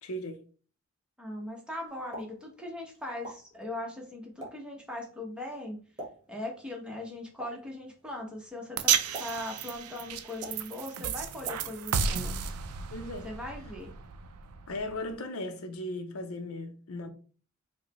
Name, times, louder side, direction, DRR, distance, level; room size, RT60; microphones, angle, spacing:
voice 1, 0.0-0.4 12.9-13.3 14.7-17.1, left 1 dB, 70° left, 0.6 m, -37 dB
voice 2, 1.2-5.8 6.3-8.9 9.2-12.5 13.2-13.9, left 1 dB, 5° right, 0.9 m, -39 dB
Explosion, 1.9-12.1, right 1 dB, 20° right, 1.3 m, -49 dB
sound 1, 8.8-15.1, right 7 dB, 85° right, 0.4 m, -33 dB
4.7 x 2.1 x 3.0 m
head